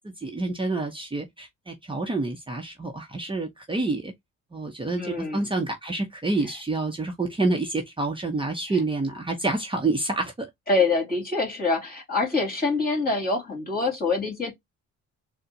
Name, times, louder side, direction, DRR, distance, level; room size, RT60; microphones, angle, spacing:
voice 1, 0.2-4.1 4.5-10.5, right 2 dB, 15° right, 0.8 m, -28 dB
voice 2, 5.0-5.4 10.7-14.6, left 3 dB, 30° left, 2.4 m, -25 dB
4.2 x 2.1 x 3.8 m
cardioid pair, 90°, 30 cm